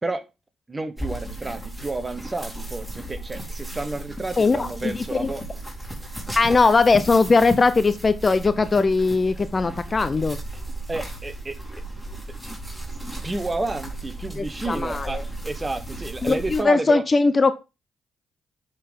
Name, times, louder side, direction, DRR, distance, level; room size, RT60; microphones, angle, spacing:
voice 1, 0.7-5.4 10.9-11.6 13.2-17.0, right 2 dB, 25° right, 1.2 m, -30 dB
sound 1, 1.0-16.6, right 1 dB, 5° right, 3.3 m, -35 dB
voice 2, 4.4-5.3 6.4-10.4 14.4-15.1 16.2-17.5, left 4 dB, 35° left, 0.6 m, -20 dB
10.0 x 4.1 x 3.7 m
hypercardioid pair, 50°, 0 cm